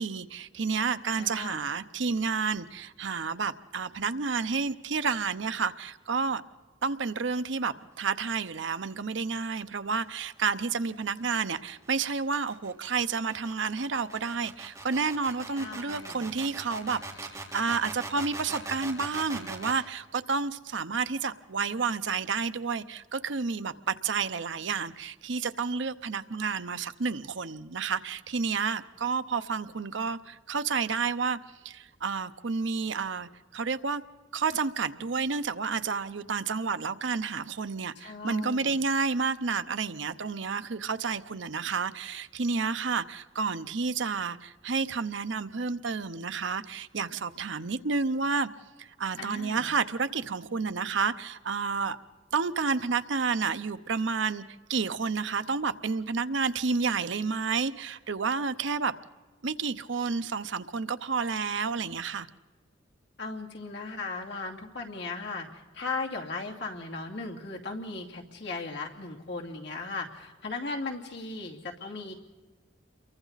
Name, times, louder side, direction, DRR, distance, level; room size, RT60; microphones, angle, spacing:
voice 1, 0.0-6.4 6.8-31.4 31.6-34.0 34.3-48.5 48.8-52.0 52.3-54.4 54.7-58.9 59.4-62.3, right 5 dB, 75° right, 0.8 m, -30 dB
voice 2, 1.2-1.6 15.6-16.3 38.0-38.8 49.2-49.7 63.2-72.1, left 3 dB, 65° left, 2.7 m, -37 dB
sound 1, 10.6-19.8, right 2 dB, 15° right, 3.7 m, -41 dB
29.0 x 23.0 x 4.1 m
head